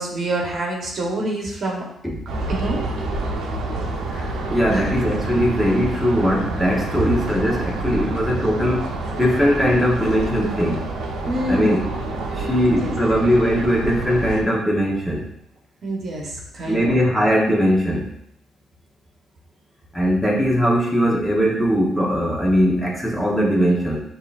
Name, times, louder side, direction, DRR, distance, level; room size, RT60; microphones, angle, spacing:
voice 1, 0.0-1.8 2.5-2.8 4.7-5.1 11.3-11.9 12.3-12.5 12.8-12.9 15.8-17.0, right 1 dB, 55° right, -1 dB, 1.1 m, -26 dB
sound 1, 2.3-14.4, right 2 dB, 85° right, 0.7 m, -28 dB
voice 2, 4.1-10.8 11.5-11.8 12.3-15.3 16.6-18.1 19.9-24.0, equal, 5° left, -3 dB, 1.1 m, -20 dB
6.4 x 2.7 x 2.5 m, 0.75 s
cardioid pair, 90°, 0 cm